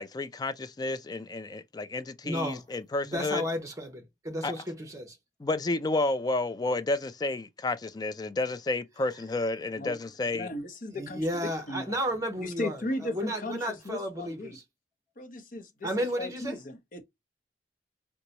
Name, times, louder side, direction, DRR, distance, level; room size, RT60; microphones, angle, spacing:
voice 1, 0.0-3.4 4.4-4.5 5.4-10.5, left 2 dB, 20° left, 0.3 m, -31 dB
voice 2, 2.2-2.6 3.0-5.2 9.1-9.2 10.9-14.6 15.8-16.6, equal, 20° right, 1.0 m, -33 dB
voice 3, 9.8-11.3 11.7-12.0 12.4-14.6 15.2-15.9 16.2-17.0, left 1 dB, 50° left, 0.8 m, -36 dB
3.9 x 2.2 x 2.8 m
head